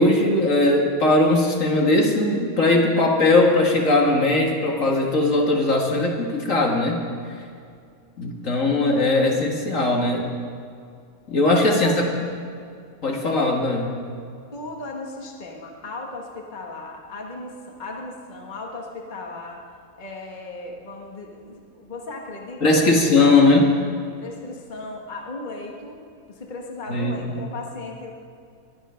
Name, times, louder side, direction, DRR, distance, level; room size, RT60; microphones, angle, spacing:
voice 1, 0.0-7.0 8.2-10.3 11.3-11.9 13.0-13.9 22.6-23.7 26.9-27.2, left 2 dB, 65° left, 0 dB, 2.2 m, -19 dB
voice 2, 8.9-9.3 11.6-12.1 14.5-19.6 19.9-23.4 24.2-28.1, left 2 dB, 35° left, 0 dB, 1.6 m, -36 dB
21.5 x 10.0 x 5.7 m, 2.3 s
omnidirectional pair, 1.5 m